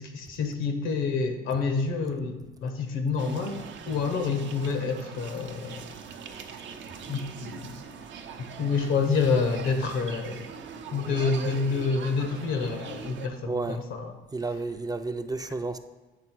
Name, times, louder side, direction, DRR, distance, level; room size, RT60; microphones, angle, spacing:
voice 1, 0.0-5.8 7.1-7.8 8.6-10.4 10.9-14.1, left 4 dB, 85° left, 6 dB, 0.9 m, -28 dB
sound 1, 3.2-13.3, right 6 dB, 70° right, 0.6 m, -41 dB
voice 2, 13.5-13.8 14.3-15.8, right 3 dB, 20° right, 8 dB, 0.4 m, -31 dB
8.8 x 3.5 x 4.5 m, 1.2 s
cardioid pair, 90°, 20 cm